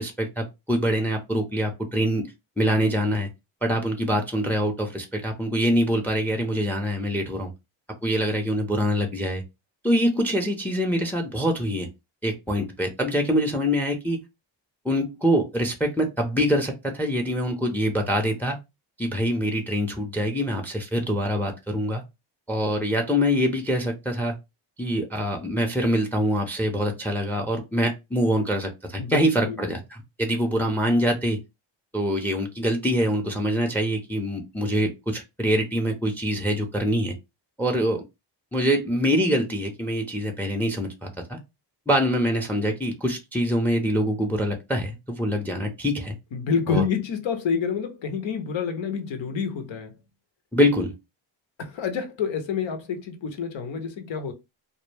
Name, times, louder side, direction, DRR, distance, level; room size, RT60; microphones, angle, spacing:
voice 1, 0.0-2.3 2.6-3.3 3.6-7.5 8.0-9.4 9.8-11.9 12.2-14.2 14.8-18.6 19.0-22.0 22.5-24.3 24.8-31.4 31.9-37.2 37.6-38.0 38.5-41.4 41.9-46.1 46.7-46.8 50.5-51.0, equal, 5° left, 0.5 m, -24 dB
voice 2, 29.0-29.7 46.3-49.9 51.6-54.3, left 6 dB, 75° left, 0.8 m, -28 dB
2.2 x 2.0 x 3.2 m
cardioid pair, 70°, 47 cm